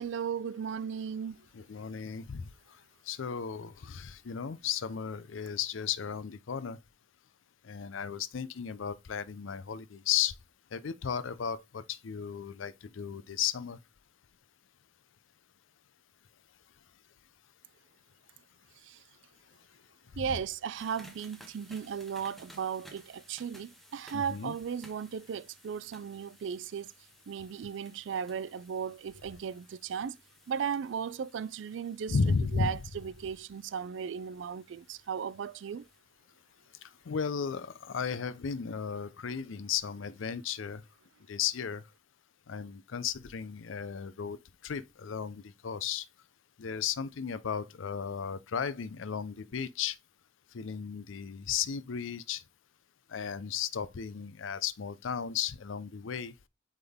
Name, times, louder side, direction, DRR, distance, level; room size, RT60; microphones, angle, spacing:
voice 1, 0.0-1.4 18.9-19.0 20.2-26.9 27.3-30.2 30.5-35.9, right 7 dB, 70° right, 0.3 m, -36 dB
voice 2, 1.5-2.5 3.1-6.8 7.6-10.3 10.7-13.8 20.1-20.4 24.1-24.6 32.1-32.8 36.8-40.8 41.3-41.8 42.5-44.4 44.6-46.1 46.6-50.0 50.5-52.4 53.1-56.3, left 7 dB, 85° left, 0.5 m, -34 dB
sound 1, 20.7-36.0, equal, ahead, 0.9 m, -58 dB
7.8 x 3.7 x 3.5 m
head